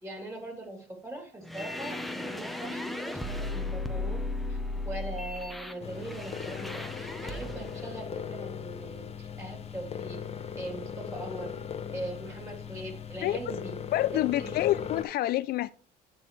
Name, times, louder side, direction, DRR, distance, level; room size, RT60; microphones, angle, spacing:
voice 1, 0.0-4.2 4.5-4.6 4.8-10.2 10.5-11.5 11.9-13.8 14.1-14.6, right 1 dB, 15° right, 3.0 m, -41 dB
sound 1, 1.4-7.9, left 2 dB, ahead, 0.8 m, -36 dB
sound 2, 5.8-15.0, left 7 dB, 35° left, 1.0 m, -39 dB
voice 2, 13.9-15.7, left 15 dB, 65° left, 0.4 m, -27 dB
8.8 x 6.0 x 3.2 m
cardioid pair, 110°, 17 cm